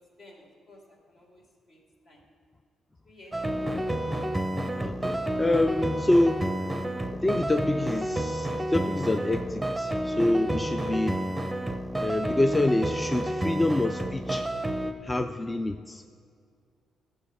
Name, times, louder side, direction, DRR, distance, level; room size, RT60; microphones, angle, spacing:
voice 1, 0.0-1.8 2.0-2.2 3.0-3.9, left 1 dB, 55° left, -1 dB, 2.6 m, -54 dB
sound 1, 3.3-14.9, right 1 dB, 5° right, 0.7 m, -30 dB
voice 2, 4.8-6.5 7.2-11.2 12.0-14.5 15.0-16.0, left 1 dB, 15° left, 7 dB, 0.4 m, -26 dB
14.0 x 7.2 x 4.8 m, 2.2 s
cardioid pair, 90°, 0 cm